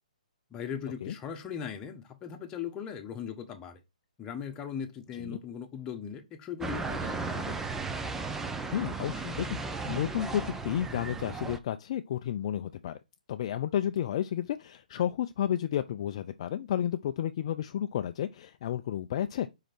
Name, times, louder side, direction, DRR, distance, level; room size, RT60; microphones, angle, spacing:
voice 1, 0.5-3.8 4.2-7.6, left 7 dB, 20° left, 1.4 m, -39 dB
sound 1, 6.6-11.6, right 4 dB, 10° right, 0.8 m, -35 dB
voice 2, 8.7-13.0 13.3-19.5, left 10 dB, 45° left, 0.5 m, -32 dB
5.1 x 5.0 x 6.2 m
figure-of-eight pair, 130°, 4 cm